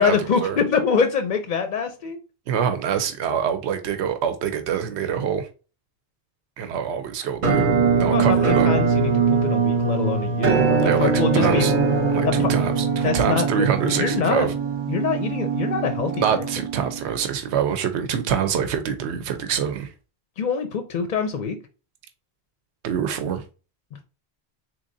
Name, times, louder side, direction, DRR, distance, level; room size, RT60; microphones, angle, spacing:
voice 1, 0.0-2.2 8.0-11.7 12.2-12.5 13.0-14.5 14.9-16.4 20.4-21.6, left 6 dB, 55° left, 0.5 m, -25 dB
voice 2, 2.5-5.5 6.6-7.6 8.0-8.7 10.8-11.7 12.1-14.5 16.1-19.9 22.8-23.4, right 8 dB, 85° right, 0.9 m, -25 dB
Musical instrument, 7.4-17.2, right 5 dB, 50° right, 0.8 m, -22 dB
3.9 x 3.1 x 2.6 m
omnidirectional pair, 1.1 m